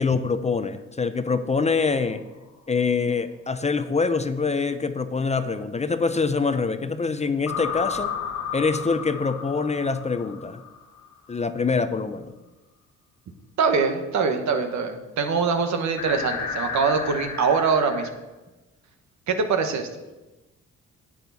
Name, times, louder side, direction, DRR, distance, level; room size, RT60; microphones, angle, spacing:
voice 1, 0.0-2.2 2.7-8.1 8.5-10.6 11.3-12.3, left 4 dB, 20° left, 10 dB, 0.5 m, -25 dB
sound 1, 1.6-2.3 7.5-11.1 16.0-18.1, left 7 dB, 80° left, 1.7 m, -33 dB
voice 2, 13.6-18.1 19.3-19.9, right 5 dB, 70° right, 6 dB, 1.3 m, -23 dB
10.0 x 8.7 x 4.1 m, 1.1 s
cardioid pair, 90°, 30 cm